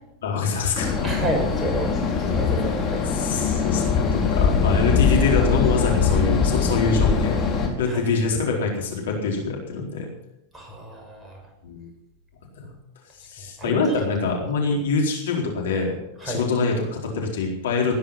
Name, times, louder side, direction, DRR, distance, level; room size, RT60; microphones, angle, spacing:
voice 1, 0.2-0.9 3.0-7.3 7.8-10.1 11.6-11.9 12.6-12.7 13.2-16.0 16.2-17.9, left 4 dB, 70° left, 0 dB, 4.2 m, -24 dB
sound 1, 0.7-7.7, left 5 dB, 30° left, 4.6 m, -22 dB
voice 2, 1.0-1.9 2.2-3.1 7.9-8.0 10.5-11.4 13.6-13.7 16.2-16.4, right 2 dB, 10° right, 0 dB, 6.7 m, -30 dB
18.0 x 10.5 x 5.9 m, 0.86 s
hypercardioid pair, 90°, 0 cm